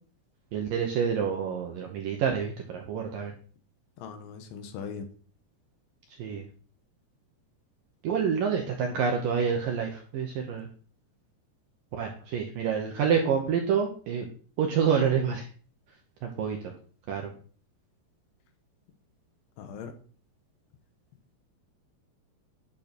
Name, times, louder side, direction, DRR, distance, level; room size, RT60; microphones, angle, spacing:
voice 1, 0.5-3.3 6.2-6.4 8.0-10.7 11.9-14.3 14.6-15.5 16.2-16.7 17.1-17.3, right 7 dB, 70° right, 2 dB, 2.1 m, -28 dB
voice 2, 4.0-5.1 19.6-19.9, left 6 dB, 80° left, 7 dB, 3.7 m, -39 dB
11.5 x 6.8 x 4.4 m, 0.42 s
omnidirectional pair, 5.4 m